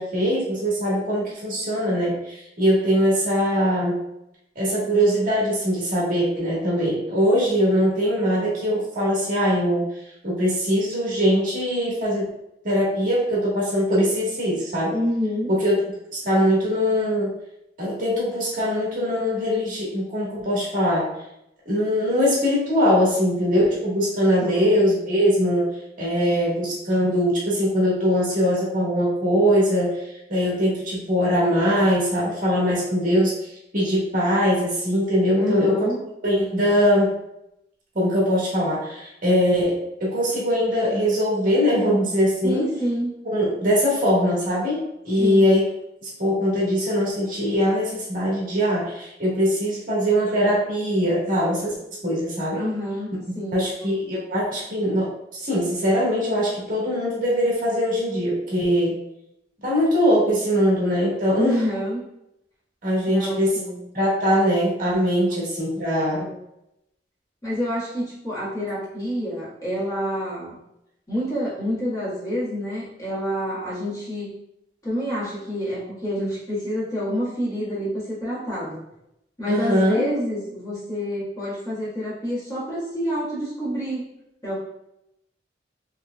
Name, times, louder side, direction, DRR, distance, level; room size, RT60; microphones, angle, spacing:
voice 1, 0.0-4.0 4.5-9.9 10.2-12.3 12.6-15.0 15.5-15.7 16.1-17.3 17.8-21.1 21.6-35.9 36.2-37.1 37.9-42.7 43.2-44.8 45.0-45.6 46.0-51.7 52.0-52.6 53.2-58.9 59.6-61.6 62.8-63.6 63.9-66.3 79.5-80.0, equal, 50° right, -6 dB, 1.5 m, -22 dB
voice 2, 14.9-15.5 24.4-24.6 35.4-36.0 42.4-43.1 45.2-45.5 52.5-53.6 61.3-62.0 63.1-63.9 66.2-66.4 67.4-70.6 71.1-74.3 74.8-78.8 79.4-84.0 84.4-84.6, equal, 20° left, -9 dB, 1.5 m, -28 dB
4.4 x 3.3 x 2.3 m, 0.83 s
head